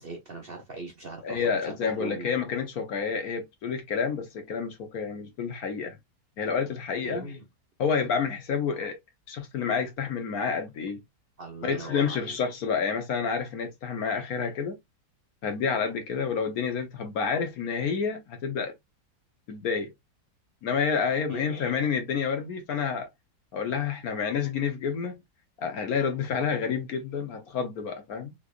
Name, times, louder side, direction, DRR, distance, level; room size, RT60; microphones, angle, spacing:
voice 1, 0.0-2.3 7.0-7.4 11.4-12.4 21.3-21.6, right 3 dB, 45° right, 0.8 m, -39 dB
voice 2, 1.2-6.0 6.4-7.3 7.8-9.0 9.3-11.0 11.6-14.8 15.4-18.7 19.5-19.9 20.6-23.1 23.5-25.2 25.6-28.3, left 6 dB, 65° left, 1.3 m, -29 dB
3.5 x 3.3 x 2.4 m
omnidirectional pair, 1.8 m